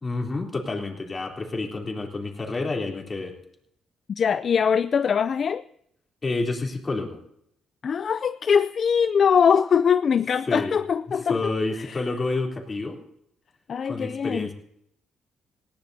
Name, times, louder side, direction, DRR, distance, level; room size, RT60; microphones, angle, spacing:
voice 1, 0.0-3.3 6.2-7.2 10.5-10.8 11.3-13.0 13.8-14.5, left 3 dB, 30° left, 3.5 m, -29 dB
voice 2, 4.2-5.6 7.8-11.4 11.9-12.0 13.7-14.5, left 7 dB, 50° left, 0.4 m, -22 dB
19.5 x 17.0 x 2.8 m
cardioid pair, 90°, 0 cm